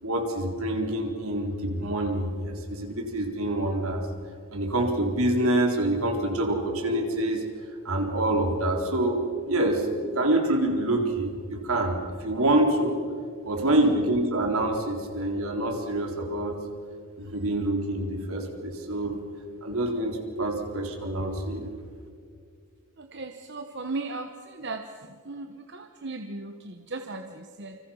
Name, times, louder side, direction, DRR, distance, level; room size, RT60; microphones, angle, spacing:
voice 1, 0.0-4.0 4.5-7.4 7.8-13.0 13.4-16.6 17.2-19.2 19.6-21.7, right 1 dB, 75° right, 2 dB, 4.1 m, -26 dB
voice 2, 23.0-24.8 25.3-27.8, right 3 dB, 50° right, 6 dB, 1.2 m, -36 dB
28.5 x 26.0 x 5.8 m, 2.2 s
head